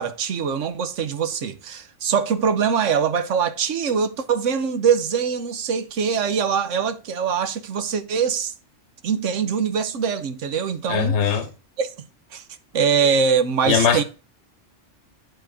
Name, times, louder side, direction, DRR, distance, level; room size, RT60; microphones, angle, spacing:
voice 1, 0.0-8.5 9.0-11.4 11.8-11.9 12.3-12.4 12.7-14.0, right 6 dB, 85° right, 1.2 m, -23 dB
voice 2, 10.9-11.5 13.7-14.0, left 7 dB, 70° left, 1.0 m, -20 dB
9.2 x 4.5 x 4.7 m
omnidirectional pair, 1.2 m